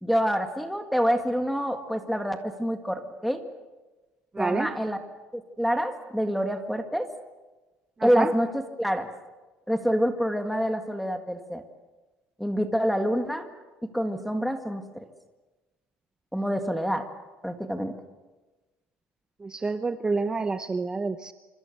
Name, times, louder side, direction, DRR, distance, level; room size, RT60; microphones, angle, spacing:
voice 1, 0.0-3.4 4.4-5.0 5.3-7.1 8.0-9.1 9.7-11.6 12.4-13.5 13.9-14.8 16.3-17.1 17.4-17.9, equal, ahead, 6 dB, 1.8 m, -27 dB
voice 2, 4.4-4.7 8.0-8.3 19.4-21.3, right 4 dB, 15° right, 10 dB, 0.8 m, -28 dB
26.5 x 25.0 x 6.7 m, 1.2 s
cardioid pair, 145°, 4 cm